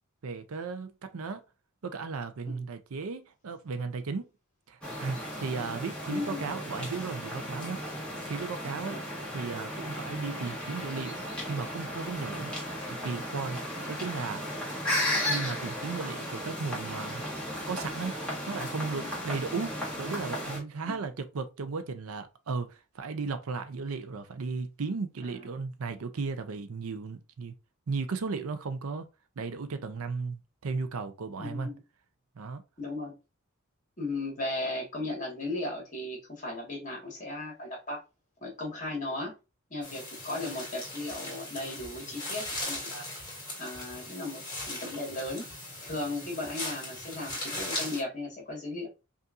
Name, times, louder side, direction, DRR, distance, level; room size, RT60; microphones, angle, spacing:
voice 1, 0.2-1.4 1.8-4.3 4.7-7.8 8.2-9.0 9.3-11.2 11.5-12.5 13.0-14.4 15.2-17.2 17.7-18.1 18.5-27.5 27.9-29.1 29.4-31.7 32.4-32.6, right 4 dB, 80° right, 0.5 m, -35 dB
sound 1, 4.8-20.6, equal, 5° left, 1.3 m, -35 dB
voice 2, 6.1-6.5 8.9-9.0 19.0-19.1 20.9-21.0 25.2-25.5 31.4-31.8 32.8-33.1 34.0-38.0 38.4-39.3 39.7-43.0 43.6-45.5 45.8-48.9, left 2 dB, 35° left, 1.7 m, -36 dB
sound 2, 39.8-48.0, left 1 dB, 20° left, 2.1 m, -39 dB
5.3 x 2.5 x 2.5 m
head